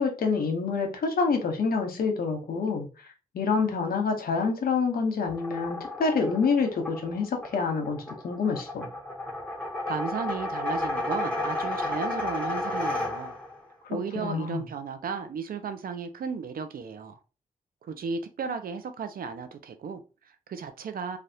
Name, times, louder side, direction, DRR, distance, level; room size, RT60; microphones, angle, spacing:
voice 1, 0.0-2.9 3.3-8.9 14.1-14.6, left 4 dB, 80° left, 0.9 m, -27 dB
sound 1, 5.3-13.6, left 2 dB, 10° left, 1.0 m, -32 dB
voice 2, 9.9-13.3 13.9-17.2 17.8-21.2, right 5 dB, 75° right, 0.5 m, -34 dB
3.4 x 2.4 x 2.7 m
cardioid pair, 75°, 15 cm